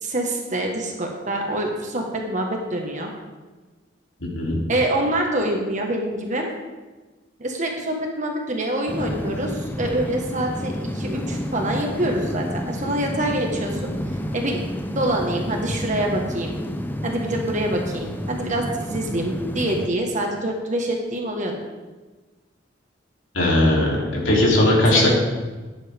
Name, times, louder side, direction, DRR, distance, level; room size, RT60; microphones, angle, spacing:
voice 1, 0.0-3.1 4.7-6.5 7.4-13.9 14.3-14.6 14.9-16.6 17.0-21.6 24.9-25.1, right 1 dB, 40° right, 1 dB, 1.6 m, -25 dB
sound 1, 8.9-19.9, equal, 10° left, 0.6 m, -30 dB
voice 2, 23.3-25.1, left 1 dB, 80° left, -3 dB, 3.5 m, -18 dB
14.0 x 10.5 x 3.6 m, 1.3 s
head